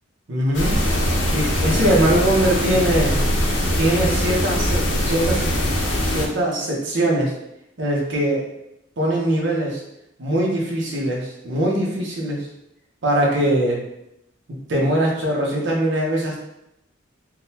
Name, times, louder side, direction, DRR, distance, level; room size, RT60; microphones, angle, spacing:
voice 1, 0.3-0.8 1.3-3.2 3.8-5.5 6.1-7.3 7.8-8.4 9.0-9.8 10.2-12.5 13.0-13.8 14.7-16.4, right 1 dB, 65° right, -3 dB, 0.8 m, -21 dB
sound 1, 0.5-6.3, left 1 dB, 70° left, 0.6 m, -21 dB
3.7 x 2.1 x 2.8 m, 0.83 s
head